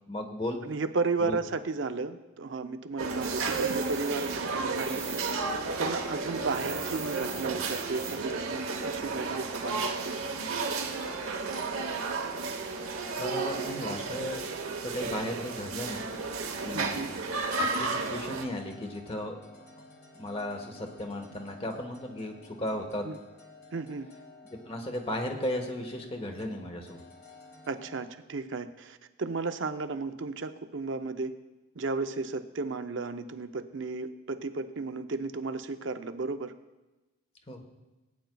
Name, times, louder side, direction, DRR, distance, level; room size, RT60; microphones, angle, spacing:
voice 1, 0.1-0.6 1.2-1.4 13.2-14.5 14.8-16.1 16.6-17.1 17.6-19.4 20.1-23.1 24.7-27.0 37.5-37.6, left 1 dB, 25° left, 4 dB, 1.2 m, -35 dB
voice 2, 0.6-10.2 13.5-13.6 16.7-17.1 23.0-23.2 23.7-24.1 27.7-31.4 31.8-36.5, right 3 dB, 60° right, 9 dB, 0.6 m, -34 dB
sound 1, 3.0-18.4, right 4 dB, 80° right, 1.0 m, -33 dB
sound 2, 3.2-5.4 5.6-8.4, right 4 dB, 10° right, 0.6 m, -42 dB
sound 3, 18.5-28.1, left 2 dB, 50° left, 1.7 m, -53 dB
19.5 x 9.4 x 2.3 m, 1.1 s
head